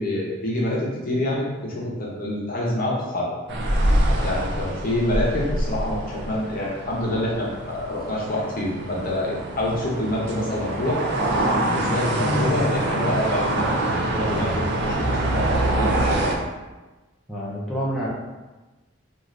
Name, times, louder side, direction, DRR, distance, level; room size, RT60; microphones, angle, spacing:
voice 1, 0.0-3.3 4.2-11.0 11.7-16.4, left 1 dB, 45° left, -4 dB, 0.6 m, -26 dB
sound 1, 3.5-16.4, right 1 dB, 55° right, 0.4 m, -25 dB
voice 2, 17.3-18.1, equal, ahead, -8 dB, 0.5 m, -28 dB
3.2 x 2.4 x 2.5 m, 1.2 s
head